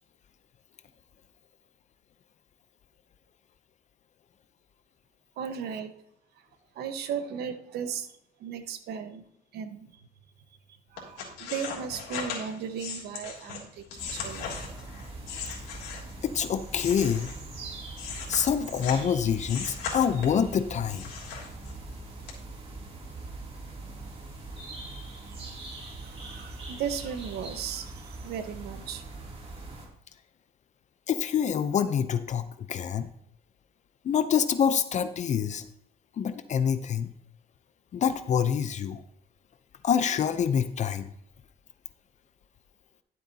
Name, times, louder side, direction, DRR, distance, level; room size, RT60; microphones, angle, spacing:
voice 1, 5.4-5.9 6.7-8.1 8.4-9.2 9.5-10.0 10.9-14.6 25.3-29.0, right 7 dB, 75° right, 8 dB, 1.2 m, -36 dB
sound 1, 11.0-16.2 16.7-19.1 19.4-20.5 20.9-21.9 22.3-22.4, left 6 dB, 90° left, 3.3 m, -38 dB
sound 2, 14.0-29.9, right 2 dB, 35° right, 2.8 m, -42 dB
voice 2, 16.2-17.3 18.3-21.0 31.1-33.1 34.0-35.6 36.2-37.1 37.9-39.0 39.8-41.1, left 8 dB, 45° left, 11 dB, 0.6 m, -26 dB
12.0 x 7.9 x 2.8 m, 0.74 s
cardioid pair, 110°, 17 cm